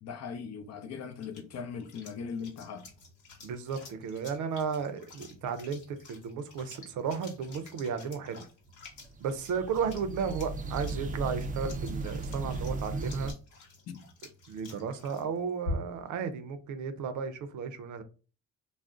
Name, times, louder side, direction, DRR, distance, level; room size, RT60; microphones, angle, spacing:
voice 1, 0.0-2.9 13.9-14.1, left 6 dB, 60° left, 0.6 m, -39 dB
sound 1, 0.6-16.1, left 1 dB, 90° left, 0.9 m, -47 dB
voice 2, 3.4-8.4 9.2-13.3 14.5-18.0, right 6 dB, 75° right, 0.6 m, -34 dB
sound 2, 8.9-13.3, right 3 dB, 30° right, 0.4 m, -36 dB
2.4 x 2.0 x 3.6 m
cardioid pair, 90°, 30 cm